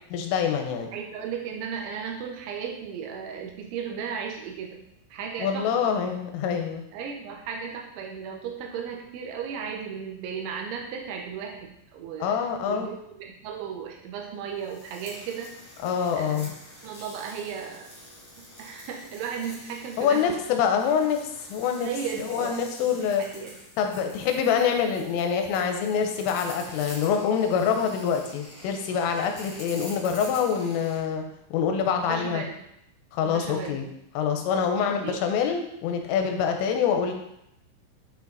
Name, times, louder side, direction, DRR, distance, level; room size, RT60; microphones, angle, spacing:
voice 1, 0.1-0.9 5.4-6.8 12.2-12.9 15.8-16.5 20.0-21.2 21.5-21.9 22.2-23.2 23.8-31.2 31.5-32.4 33.1-33.8 34.2-37.1, left 7 dB, 85° left, 4 dB, 3.4 m, -25 dB
voice 2, 0.9-4.8 5.1-6.0 6.9-12.4 12.7-15.6 16.2-16.6 16.8-17.9 18.6-20.3 21.8-23.5 32.0-32.6 33.2-33.9 34.8-35.2, right 7 dB, 80° right, 1 dB, 3.1 m, -35 dB
sound 1, 14.6-31.0, left 1 dB, 30° left, 0.4 m, -46 dB
8.8 x 5.1 x 4.0 m, 0.78 s
omnidirectional pair, 5.8 m